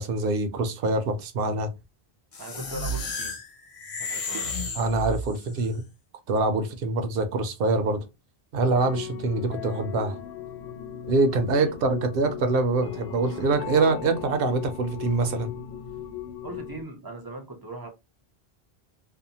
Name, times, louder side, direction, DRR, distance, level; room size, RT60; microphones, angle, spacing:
voice 1, 0.0-1.7 4.4-5.8 6.3-8.0 8.5-10.2 11.1-15.5, right 3 dB, 65° right, 0.7 m, -25 dB
sound 1, 2.3-5.6, left 1 dB, 45° left, 0.5 m, -32 dB
voice 2, 2.4-3.4 4.0-4.5 16.4-17.9, right 2 dB, 30° right, 0.5 m, -39 dB
sound 2, 8.6-16.8, left 9 dB, 80° left, 0.8 m, -37 dB
2.6 x 2.1 x 2.7 m
omnidirectional pair, 1.1 m